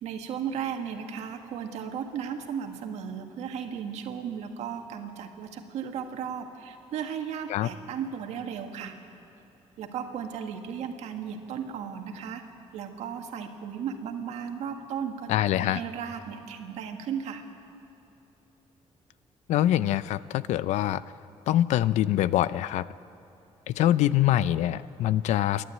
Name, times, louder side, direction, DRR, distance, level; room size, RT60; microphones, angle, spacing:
voice 1, 0.0-8.9 9.8-12.4 12.7-15.3 15.5-17.4, right 7 dB, 75° right, 4 dB, 1.8 m, -35 dB
voice 2, 15.3-15.8 19.5-21.0 21.5-22.9 23.7-25.6, left 13 dB, 85° left, 17 dB, 0.5 m, -24 dB
28.5 x 11.5 x 9.1 m, 2.9 s
cardioid pair, 175°, 12 cm